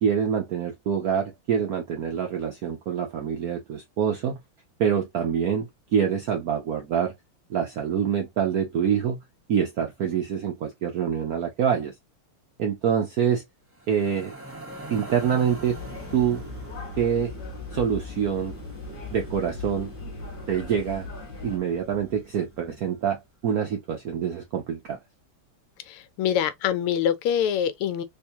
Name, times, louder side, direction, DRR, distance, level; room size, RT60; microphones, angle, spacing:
voice 1, 0.0-4.4 4.8-5.7 5.9-7.1 7.5-9.2 9.5-11.9 12.6-13.4 13.9-14.3 14.9-15.8 16.1-16.4 17.0-17.3 17.7-18.5 19.1-19.9 20.5-21.1 21.4-25.0, right 8 dB, 70° right, 0.8 m, -25 dB
sound 1, 13.7-23.0, right 1 dB, 20° right, 0.4 m, -43 dB
sound 2, 15.7-21.6, left 4 dB, 65° left, 0.5 m, -39 dB
voice 2, 25.9-28.0, left 9 dB, 85° left, 1.5 m, -25 dB
3.5 x 3.0 x 2.7 m
omnidirectional pair, 2.4 m